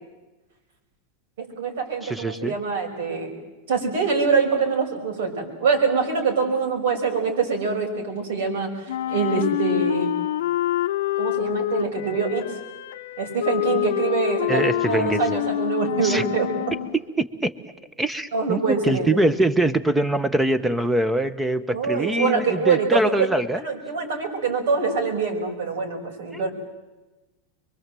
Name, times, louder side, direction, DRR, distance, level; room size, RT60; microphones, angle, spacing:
voice 1, 1.4-3.3 3.7-8.7 9.1-10.1 11.2-12.4 13.2-16.5 18.3-19.2 21.7-23.3 23.5-26.5, right 5 dB, 75° right, 3 dB, 5.7 m, -24 dB
voice 2, 2.0-2.6 14.5-15.4 16.0-16.2 17.2-17.5 18.0-23.6 26.3-26.5, right 1 dB, 5° right, 14 dB, 1.0 m, -23 dB
Wind instrument woodwind instrument, 8.9-17.0, left 14 dB, 85° left, 0.8 m, -27 dB
24.5 x 23.0 x 7.7 m, 1.1 s
supercardioid pair, 145°, 0 cm